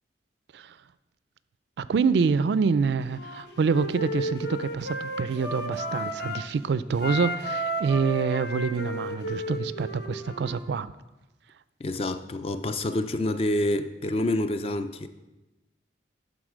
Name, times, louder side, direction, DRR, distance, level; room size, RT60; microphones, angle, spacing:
voice 1, 1.8-10.9, right 5 dB, 65° right, 0.3 m, -26 dB
Wind instrument woodwind instrument, 3.1-6.5 6.9-10.6, equal, 65° left, 1.1 m, -33 dB
voice 2, 11.8-15.1, left 1 dB, 30° left, 0.4 m, -27 dB
11.5 x 4.0 x 6.0 m
head